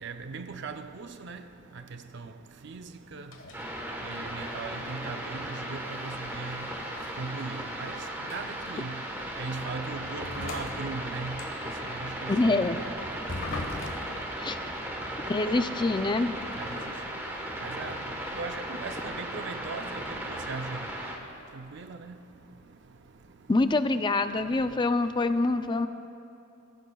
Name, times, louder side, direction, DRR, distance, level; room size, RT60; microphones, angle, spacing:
voice 1, 0.0-1.4 2.1-2.3 2.6-2.9 3.1-3.3 4.1-6.7 7.2-8.0 8.3-9.0 9.4-11.4 11.8-12.6 12.8-13.0 16.6-16.7 17.6-17.9 18.4-20.0 20.3-20.8 21.5-22.2, right 4 dB, 60° right, 8 dB, 0.5 m, -38 dB
sound 1, 3.3-3.7 4.1-4.4 5.9-7.9 8.3-8.7 9.3-9.4 10.2-11.8 13.3-14.2, left 2 dB, 70° left, 1.4 m, -39 dB
sound 2, 3.5-21.2, right 1 dB, 10° right, 1.2 m, -36 dB
voice 2, 12.3-12.8 14.4-14.6 15.3-16.3 23.5-25.9, left 2 dB, 25° left, 10 dB, 0.4 m, -25 dB
20.5 x 15.0 x 2.3 m, 2.8 s
head